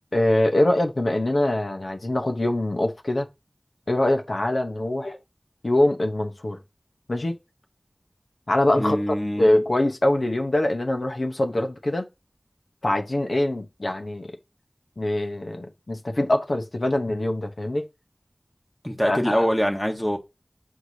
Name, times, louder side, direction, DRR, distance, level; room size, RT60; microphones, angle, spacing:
voice 1, 0.1-3.3 3.9-5.2 5.6-6.6 7.1-7.3 8.5-12.1 12.8-14.4 15.0-17.9 19.0-19.5, left 1 dB, 75° left, 0.9 m, -23 dB
voice 2, 8.8-9.5 18.8-20.2, equal, 15° left, 1.3 m, -24 dB
7.8 x 4.8 x 2.8 m
wide cardioid pair, 45°, 0 cm